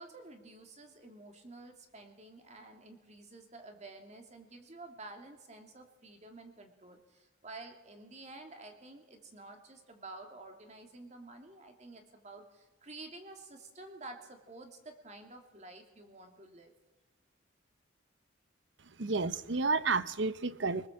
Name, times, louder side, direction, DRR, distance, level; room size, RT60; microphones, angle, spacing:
voice 1, 0.0-16.7, right 2 dB, 35° right, 2.8 m, -50 dB
voice 2, 19.0-20.9, right 4 dB, 65° right, 0.8 m, -31 dB
23.5 x 20.0 x 7.5 m
head